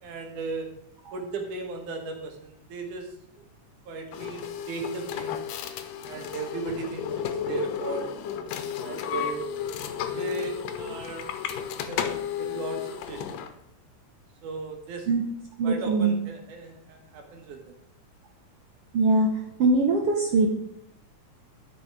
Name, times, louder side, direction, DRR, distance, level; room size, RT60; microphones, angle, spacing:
voice 1, 0.0-0.7 1.1-3.1 3.9-5.5 6.0-8.1 8.8-9.5 10.2-11.3 11.7-13.4 14.4-15.1 15.6-17.7, right 4 dB, 80° right, 4 dB, 3.0 m, -36 dB
sound 1, 4.1-13.5, left 9 dB, 85° left, 2.4 m, -33 dB
voice 2, 15.6-16.2 18.9-19.3 19.6-20.5, right 3 dB, 60° right, 1 dB, 1.7 m, -21 dB
12.5 x 6.2 x 4.9 m, 0.72 s
omnidirectional pair, 3.6 m